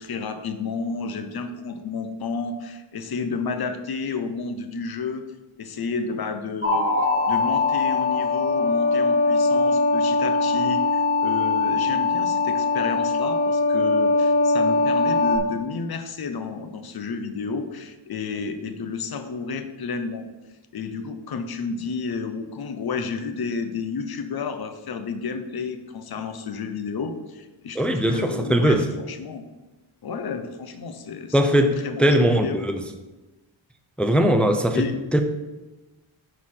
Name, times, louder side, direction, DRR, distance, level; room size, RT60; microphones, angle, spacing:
voice 1, 0.0-5.2 5.6-6.9 7.2-20.2 20.7-29.4 30.0-32.7 34.7-34.9, left 4 dB, 50° left, 8 dB, 0.7 m, -31 dB
sound 1, 6.6-15.4, left 3 dB, 20° right, 1.1 m, -21 dB
voice 2, 27.8-28.9 31.3-32.8 34.0-34.9 35.1-35.2, right 1 dB, ahead, 6 dB, 0.4 m, -20 dB
11.0 x 4.1 x 4.3 m, 1.1 s
wide cardioid pair, 165°, 49 cm